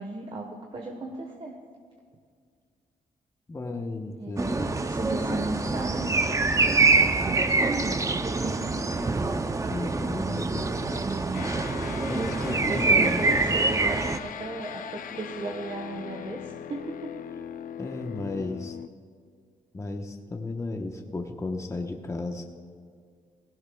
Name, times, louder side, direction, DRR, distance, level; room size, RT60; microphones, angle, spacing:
voice 1, 0.0-1.5 4.2-8.9 11.9-17.1, right 2 dB, 40° right, 1 dB, 1.2 m, -36 dB
voice 2, 3.5-4.8 9.6-11.2 12.1-13.6 17.8-18.8 19.7-22.4, left 2 dB, 20° left, 3 dB, 1.0 m, -34 dB
sound 1, 4.4-14.2, right 3 dB, 20° right, 0.6 m, -25 dB
sound 2, 11.3-18.9, left 9 dB, 75° left, 0.5 m, -39 dB
17.5 x 17.0 x 2.3 m, 2.1 s
cardioid pair, 95°, 14 cm